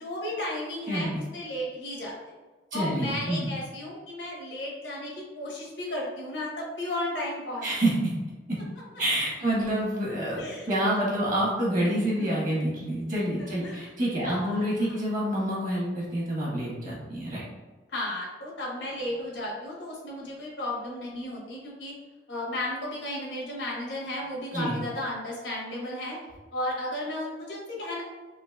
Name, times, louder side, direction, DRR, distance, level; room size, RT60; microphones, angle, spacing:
voice 1, 0.0-2.1 2.7-7.9 10.4-10.7 12.2-12.5 13.4-13.9 14.2-15.0 17.9-21.9 22.3-26.2 26.5-28.0, left 1 dB, 85° left, -4 dB, 1.2 m, -34 dB
voice 2, 0.9-1.2 2.7-3.5 7.6-8.1 8.5-8.6 9.0-17.5 24.5-24.8, right 1 dB, 45° right, -4 dB, 1.1 m, -27 dB
3.9 x 2.6 x 2.3 m, 1.2 s
head